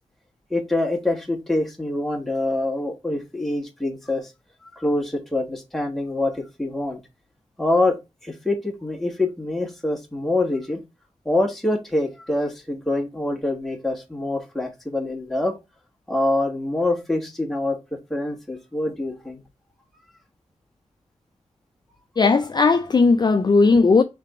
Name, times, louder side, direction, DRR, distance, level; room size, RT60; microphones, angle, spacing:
voice 1, 0.5-4.3 4.6-7.0 7.6-10.8 11.2-15.6 16.1-19.4, left 2 dB, ahead, 1.3 m, -25 dB
voice 2, 22.2-24.0, left 4 dB, 35° left, 0.4 m, -17 dB
3.4 x 3.3 x 4.8 m
wide cardioid pair, 95°, 12 cm